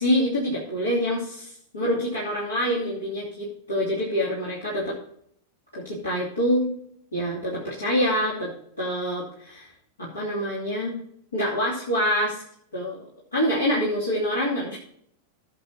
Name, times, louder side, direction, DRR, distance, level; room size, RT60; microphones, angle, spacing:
voice 1, 0.0-5.0 5.7-6.7 7.1-9.7 10.0-11.0 11.3-12.4 12.7-13.0 13.3-14.8, equal, 75° left, -6 dB, 2.9 m, -26 dB
16.5 x 7.0 x 2.9 m, 0.67 s
figure-of-eight pair, 90°, 0 cm